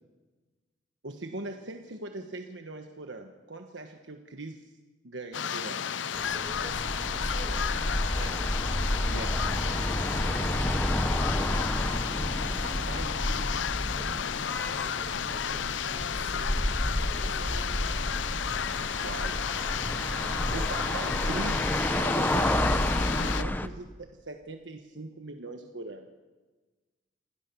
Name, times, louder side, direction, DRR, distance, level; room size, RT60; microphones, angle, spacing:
voice 1, 1.0-4.7 5.0-5.8 8.2-8.3 9.1-9.4 12.6-13.6 19.0-19.6 20.5-26.1, right 2 dB, 75° right, 5 dB, 1.3 m, -41 dB
sound 1, 5.3-23.4, left 8 dB, 80° left, 0.6 m, -33 dB
sound 2, 6.1-23.7, left 1 dB, 10° left, 0.9 m, -30 dB
voice 2, 6.1-8.4 9.8-12.0 14.3-14.4 14.8-16.8 17.1-18.0, right 1 dB, 35° right, 1 dB, 5.6 m, -48 dB
27.0 x 17.5 x 7.0 m, 1.3 s
head